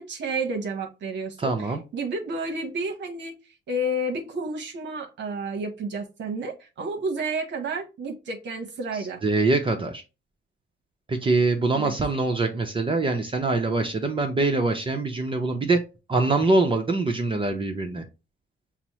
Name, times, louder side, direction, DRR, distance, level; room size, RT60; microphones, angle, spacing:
voice 1, 0.0-3.3 3.7-9.2 11.7-11.9, right 2 dB, 65° right, 0.9 m, -31 dB
voice 2, 1.4-1.8 9.0-10.0 11.1-15.8 16.1-18.0, right 3 dB, 25° right, 0.6 m, -24 dB
5.8 x 2.0 x 2.8 m
cardioid pair, 90°, 20 cm